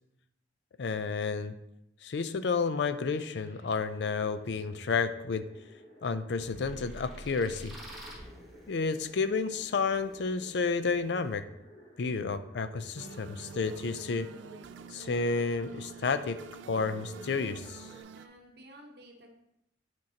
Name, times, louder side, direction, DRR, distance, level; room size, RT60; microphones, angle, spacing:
voice 1, 0.8-1.5 2.0-5.4 6.0-7.7 8.7-11.4 12.0-14.3 14.9-16.4 16.7-17.9, left 4 dB, 65° left, 12 dB, 0.4 m, -31 dB
sound 1, 3.1-18.0, equal, 80° left, 2.3 m, -54 dB
sound 2, 6.4-11.4, equal, ahead, 1.0 m, -49 dB
sound 3, 13.0-18.3, right 6 dB, 75° right, 0.3 m, -48 dB
voice 2, 18.1-19.3, right 1 dB, 55° right, 2 dB, 0.8 m, -53 dB
8.7 x 4.5 x 2.8 m, 0.82 s
head